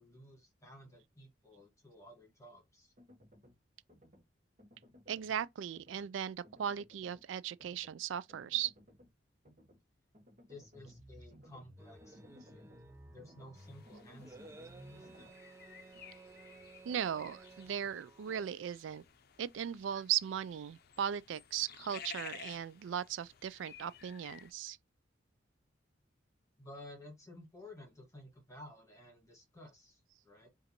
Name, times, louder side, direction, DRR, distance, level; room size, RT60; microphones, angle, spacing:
voice 1, 0.0-2.9 10.5-12.7 13.0-14.5 14.9-15.3 26.6-30.5, left 1 dB, 15° left, 1.6 m, -54 dB
sound 1, 3.0-3.6 3.9-4.2 4.6-5.4 5.7-6.1 6.4-7.2 7.6-7.9 8.3-9.1 9.4-9.8 10.1-15.3, equal, 40° right, 1.2 m, -58 dB
voice 2, 5.1-8.7 16.9-19.0 19.4-24.8, right 9 dB, 90° right, 0.3 m, -37 dB
sound 2, 11.8-18.5, right 3 dB, 15° right, 0.4 m, -57 dB
sound 3, 13.6-24.5, left 8 dB, 55° left, 0.5 m, -54 dB
5.0 x 2.6 x 3.0 m
head